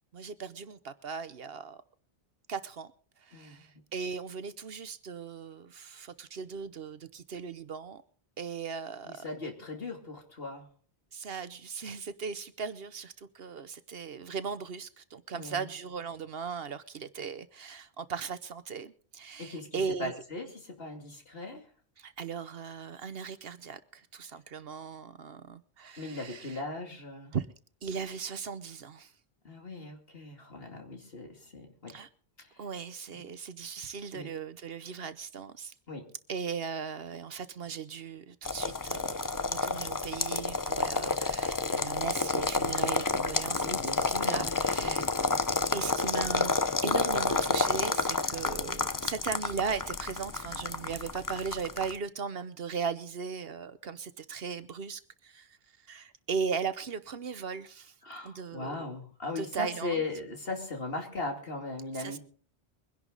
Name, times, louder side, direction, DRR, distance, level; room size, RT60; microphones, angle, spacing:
voice 1, 0.1-1.8 2.5-2.9 3.2-8.0 8.4-9.2 11.1-20.2 22.0-26.6 27.3-27.5 27.8-29.1 31.9-32.1 32.6-35.7 36.3-43.7 44.2-45.1 45.7-55.5 55.9-57.9 58.2-58.9 59.4-60.0 62.0-62.2, right 6 dB, 65° right, 1.1 m, -38 dB
voice 2, 3.3-3.7 9.1-10.7 15.3-15.7 19.4-21.6 26.0-27.3 29.4-32.0 32.4-32.5 34.1-34.3 35.9-36.0 43.6-45.1 58.0-62.2, left 2 dB, 60° left, 2.9 m, -38 dB
sound 1, 38.4-52.0, left 3 dB, 25° left, 0.5 m, -30 dB
23.0 x 11.0 x 4.0 m
omnidirectional pair, 1.1 m